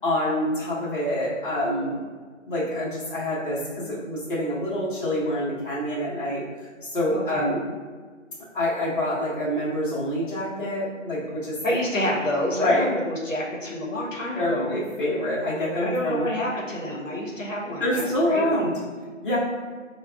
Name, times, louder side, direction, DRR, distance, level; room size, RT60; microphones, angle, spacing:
voice 1, 0.0-2.0 2.4-7.6 8.5-11.7 12.5-12.9 14.4-16.3 17.8-18.7 19.2-19.4, left 1 dB, 40° left, -9 dB, 0.9 m, -26 dB
voice 2, 7.1-7.5 11.6-14.7 15.8-18.8, left 1 dB, 75° left, -4 dB, 0.9 m, -28 dB
4.9 x 2.3 x 2.3 m, 1.5 s
figure-of-eight pair, 170°, 39 cm